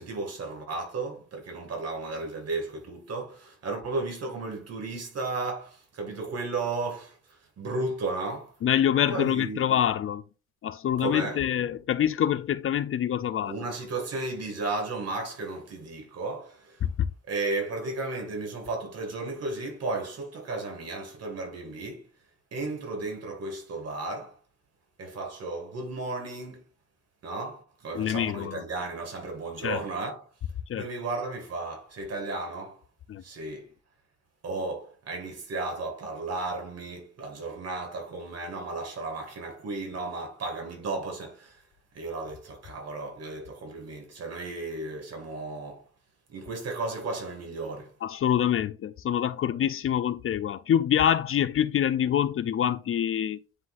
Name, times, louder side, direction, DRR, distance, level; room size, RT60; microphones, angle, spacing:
voice 1, 0.0-8.5 9.1-9.7 11.0-11.8 13.5-16.9 17.3-22.1 22.5-24.4 25.0-26.6 27.2-30.3 30.7-32.8 33.2-33.7 34.4-41.6 41.9-45.8 46.3-47.9, right 3 dB, 55° right, 2.2 m, -34 dB
voice 2, 8.6-10.2 10.6-13.6 16.8-17.1 27.9-28.7 29.6-29.8 30.7-30.9 33.1-33.2 48.0-53.4, left 10 dB, 45° left, 0.4 m, -26 dB
9.7 x 3.9 x 2.6 m
cardioid pair, 90°, 30 cm